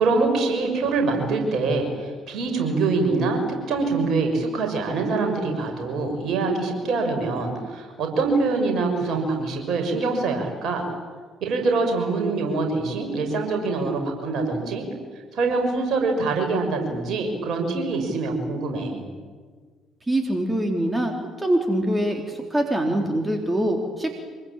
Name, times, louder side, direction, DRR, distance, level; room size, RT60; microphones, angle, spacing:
voice 1, 0.0-10.8 11.4-14.8 15.3-19.0, right 3 dB, 50° right, 3 dB, 6.2 m, -24 dB
voice 2, 20.1-24.2, right 1 dB, 15° right, 3 dB, 3.9 m, -24 dB
25.5 x 23.0 x 8.9 m, 1.5 s
figure-of-eight pair, 45°, 0 cm